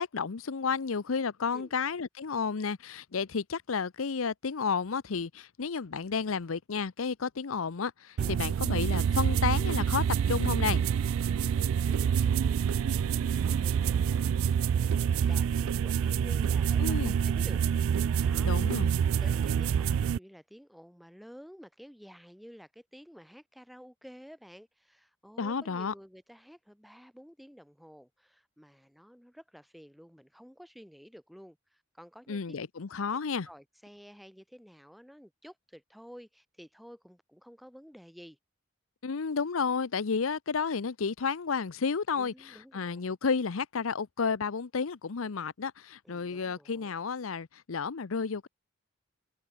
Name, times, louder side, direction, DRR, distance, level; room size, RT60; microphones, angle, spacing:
voice 1, 0.0-10.8 16.8-17.2 18.4-18.9 25.4-25.9 32.3-33.5 39.0-42.3 42.7-48.5, left 5 dB, 90° left, 0.7 m, -31 dB
sound 1, 8.2-20.2, right 7 dB, 80° right, 0.3 m, -27 dB
voice 2, 11.2-18.9 19.2-32.6 33.3-38.4 42.1-43.2 46.0-46.9, equal, ahead, 3.8 m, -52 dB
head